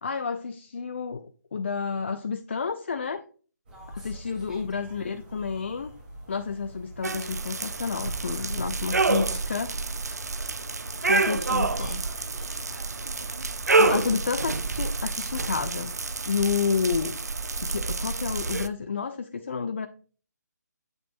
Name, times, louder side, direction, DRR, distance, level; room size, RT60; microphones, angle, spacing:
voice 1, 0.0-3.2 3.9-5.9 6.3-10.2 11.1-12.0 13.8-15.9 16.3-17.2 17.6-19.9, left 5 dB, 40° left, 9 dB, 0.4 m, -30 dB
voice 2, 3.7-4.8 8.9-9.0 11.1-13.0, right 1 dB, 5° right, -2 dB, 1.5 m, -50 dB
sound 1, 3.7-15.5, equal, 35° right, 3.1 m, -46 dB
sound 2, 7.0-18.7, right 3 dB, 60° right, 0.5 m, -28 dB
7.8 x 5.8 x 2.5 m, 0.40 s
figure-of-eight pair, 145°, 10 cm